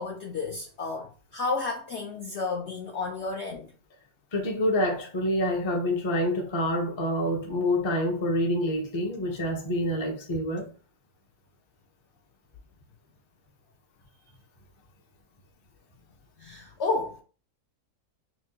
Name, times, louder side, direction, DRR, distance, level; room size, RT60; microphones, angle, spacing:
voice 1, 0.0-3.7 16.4-17.2, left 3 dB, 65° left, 0.7 m, -32 dB
voice 2, 4.3-10.7, left 1 dB, 30° left, 0.5 m, -27 dB
5.5 x 2.2 x 2.7 m
omnidirectional pair, 1.6 m